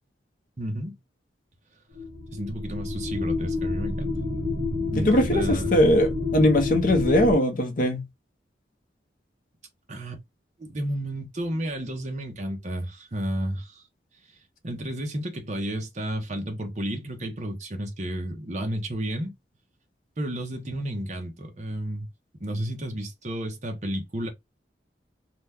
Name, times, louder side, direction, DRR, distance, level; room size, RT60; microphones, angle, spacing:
voice 1, 0.6-1.0 2.3-4.1 4.9-5.8 9.9-10.2 10.6-13.8 14.6-19.3 20.2-22.1 22.4-24.3, right 1 dB, 40° right, 0.9 m, -32 dB
sound 1, 2.0-7.3, left 3 dB, 80° right, 0.9 m, -28 dB
voice 2, 5.0-8.0, left 1 dB, 45° left, 0.7 m, -21 dB
2.8 x 2.2 x 3.4 m
head